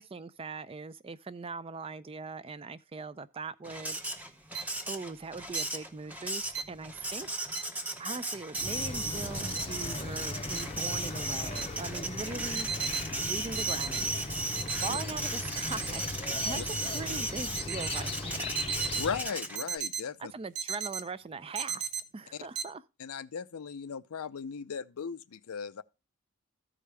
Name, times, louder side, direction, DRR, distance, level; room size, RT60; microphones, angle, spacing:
voice 1, 0.0-4.0 4.9-7.4 8.0-12.7 13.2-14.1 14.8-18.5 20.2-22.8, right 4 dB, 25° right, 0.4 m, -41 dB
Printer, 3.6-19.8, right 1 dB, 5° right, 0.8 m, -36 dB
sound 1, 4.5-4.6 5.5-5.6 6.5-6.6 7.5-7.6 8.5-8.6 9.5-9.6 10.5-10.6 11.5-11.6 12.5-13.0 13.5-14.0 14.5-15.0 15.5-16.0 16.5-17.0 17.5-18.0 18.5-19.0 19.5-20.0 20.6-21.0 21.5-22.0 22.6-22.7, right 7 dB, 80° right, 0.7 m, -34 dB
sound 2, 8.5-19.3, left 2 dB, 25° left, 0.6 m, -39 dB
voice 2, 19.0-20.3 22.3-22.5 23.0-25.8, left 6 dB, 90° left, 0.5 m, -37 dB
14.0 x 5.0 x 3.3 m
head